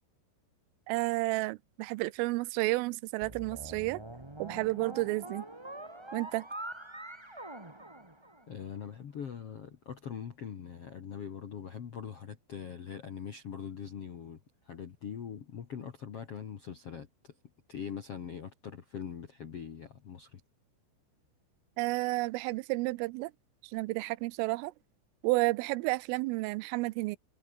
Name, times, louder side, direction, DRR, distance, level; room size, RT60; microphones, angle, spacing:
voice 1, 0.9-4.0 4.4-5.4 6.1-6.5 21.8-23.3 23.7-24.7 25.2-27.2, right 22 dB, 85° right, 3.3 m, -31 dB
sound 1, 3.2-8.7, right 1 dB, 25° right, 0.5 m, -44 dB
voice 2, 8.5-17.3 17.7-20.4, left 7 dB, 85° left, 1.3 m, -42 dB
omnidirectional pair, 5.8 m